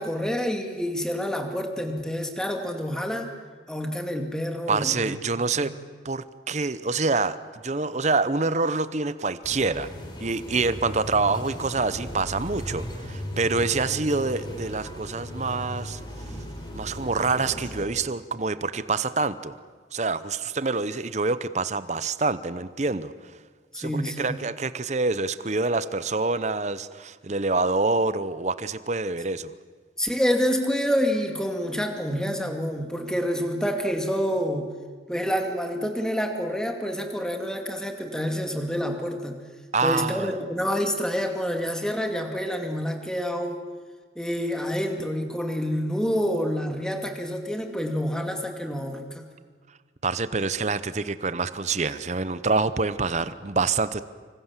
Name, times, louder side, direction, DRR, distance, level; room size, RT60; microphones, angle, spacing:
voice 1, 0.0-3.3 3.7-5.1 5.5-5.7 13.9-14.0 23.7-24.4 30.0-34.7 35.1-39.4 39.8-43.6 44.2-49.3, equal, 5° left, 4 dB, 2.3 m, -28 dB
voice 2, 4.7-5.7 6.0-9.9 10.2-16.0 16.7-19.5 19.9-23.1 23.8-29.5 39.7-40.3 50.0-54.0, right 3 dB, 40° right, 14 dB, 0.8 m, -26 dB
sound 1, 9.4-17.8, left 1 dB, 25° left, 4.0 m, -37 dB
25.5 x 25.5 x 7.4 m, 1.5 s
head